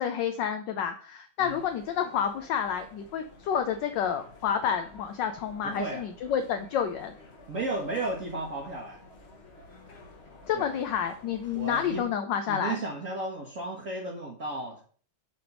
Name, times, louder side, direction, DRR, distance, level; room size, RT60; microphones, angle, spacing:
voice 1, 0.0-7.1 10.5-12.8, left 8 dB, 70° left, 7 dB, 1.1 m, -29 dB
sound 1, 1.4-12.1, left 2 dB, 35° left, 1.2 m, -52 dB
voice 2, 5.6-6.0 7.5-9.0 10.5-10.7 11.5-12.1 12.5-14.8, right 2 dB, 45° right, -2 dB, 1.4 m, -34 dB
7.7 x 3.4 x 5.8 m, 0.43 s
omnidirectional pair, 2.4 m